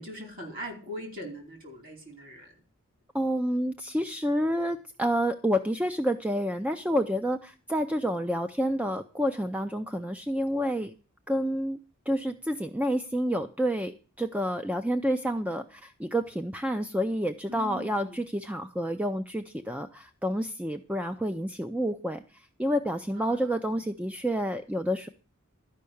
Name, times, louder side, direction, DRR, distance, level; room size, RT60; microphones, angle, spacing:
voice 1, 0.0-2.5 17.5-18.2 23.1-23.6, equal, 40° right, 3 dB, 4.3 m, -41 dB
voice 2, 3.1-10.9 11.3-11.8 12.1-13.9 14.2-25.1, equal, 5° right, 8 dB, 0.5 m, -29 dB
12.5 x 5.6 x 8.5 m, 0.37 s
head